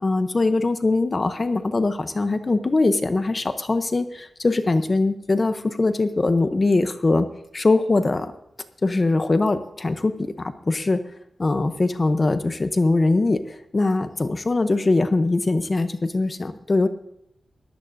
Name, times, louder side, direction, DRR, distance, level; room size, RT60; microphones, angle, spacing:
voice 1, 0.0-7.3 7.5-8.3 8.8-11.0 11.4-16.9, left 2 dB, 25° left, 10 dB, 0.7 m, -22 dB
19.5 x 15.0 x 2.6 m, 0.77 s
wide cardioid pair, 175°, 0 cm